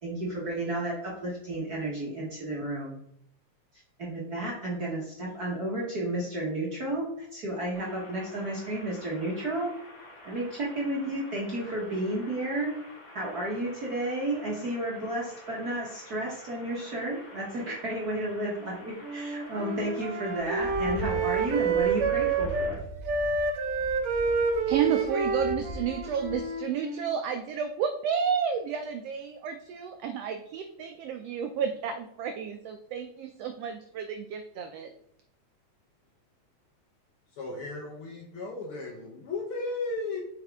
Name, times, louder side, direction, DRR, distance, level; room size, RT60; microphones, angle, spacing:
voice 1, 0.0-3.0 4.0-9.7 10.2-12.7 13.1-22.8, right 1 dB, 55° right, -4 dB, 1.1 m, -32 dB
sound 1, 7.7-22.7, left 2 dB, 40° left, 2.6 m, -49 dB
Wind instrument woodwind instrument, 19.0-22.8 23.0-27.2, right 4 dB, 70° right, 2.0 m, -29 dB
sound 2, 20.4-26.4, right 1 dB, 25° left, 1.0 m, -40 dB
voice 2, 24.7-34.9, right 7 dB, 85° right, 7 dB, 1.4 m, -31 dB
voice 3, 37.3-40.2, left 3 dB, 60° left, 0 dB, 1.5 m, -35 dB
7.8 x 4.8 x 3.5 m, 0.71 s
omnidirectional pair, 3.4 m